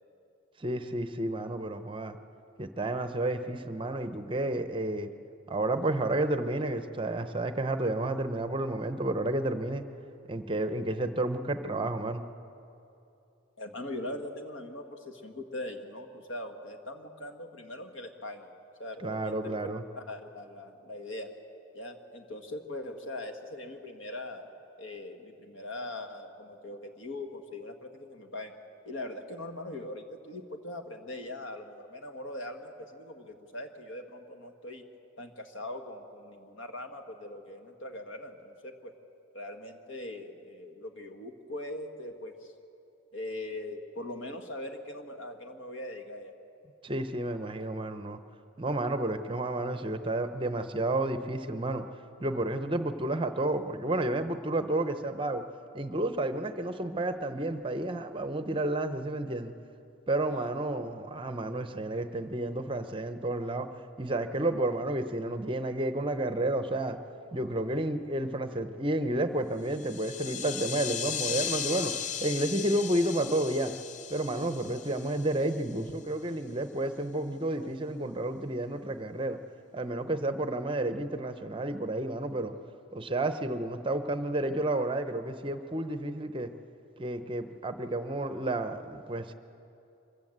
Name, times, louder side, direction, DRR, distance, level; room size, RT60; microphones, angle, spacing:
voice 1, 0.6-2.2 2.6-5.1 5.5-9.8 10.3-12.2 19.0-19.8 46.8-48.2 48.6-51.8 52.2-55.4 55.7-59.5 60.1-63.7 64.0-67.0 67.3-71.9 72.2-73.7 74.1-79.4 79.7-82.5 82.9-86.5 87.0-89.3, right 1 dB, 25° right, 9 dB, 0.7 m, -31 dB
voice 2, 13.6-18.5 18.8-19.5 19.9-21.3 21.7-24.5 24.8-28.5 28.8-34.8 35.2-38.9 39.3-42.5 43.1-46.3 60.3-60.5, left 1 dB, 75° left, 5 dB, 1.7 m, -41 dB
sound 1, 69.7-75.8, left 8 dB, 35° left, 0.5 m, -37 dB
24.5 x 15.0 x 8.0 m, 2.7 s
head